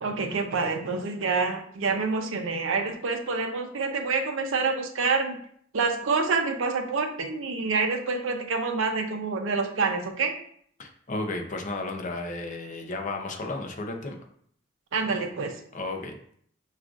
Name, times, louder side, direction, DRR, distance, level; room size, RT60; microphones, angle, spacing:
voice 1, 0.0-5.4 5.7-10.3 14.9-15.6, right 4 dB, 85° right, 5 dB, 0.6 m, -27 dB
voice 2, 10.8-14.2 15.7-16.3, left 2 dB, 40° left, 3 dB, 0.6 m, -33 dB
6.3 x 2.4 x 2.4 m, 0.63 s
head